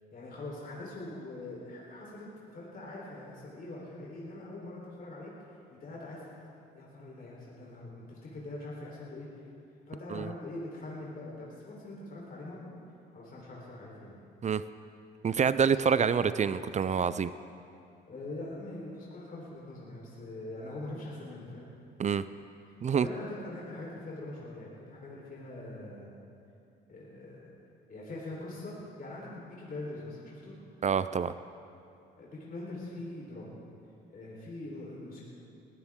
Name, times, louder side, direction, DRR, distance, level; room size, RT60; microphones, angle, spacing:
voice 1, 0.1-2.3 2.5-5.3 5.7-6.3 6.7-9.4 9.9-12.6 13.1-14.2 18.1-21.7 22.9-26.1 26.9-27.5 27.9-28.7 29.0-30.5 32.2-33.5 34.1-35.2, left 2 dB, 45° left, -5 dB, 3.9 m, -43 dB
voice 2, 15.2-17.3 22.0-22.2 22.8-23.1 30.8-31.3, right 6 dB, 35° right, 14 dB, 0.4 m, -27 dB
21.0 x 15.0 x 3.7 m, 2.6 s
cardioid pair, 90°, 20 cm